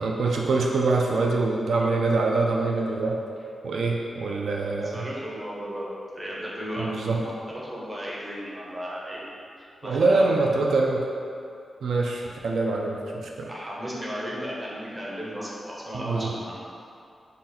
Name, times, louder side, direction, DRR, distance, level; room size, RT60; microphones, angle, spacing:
voice 1, 0.0-3.2 3.6-5.1 6.8-7.2 9.8-11.1 11.8-13.5 15.9-16.3, right 3 dB, 85° right, -1 dB, 0.3 m, -24 dB
voice 2, 4.8-10.6 13.5-16.7, equal, 15° right, -6 dB, 0.6 m, -35 dB
2.8 x 2.6 x 3.8 m, 2.5 s
wide cardioid pair, 180°, 0 cm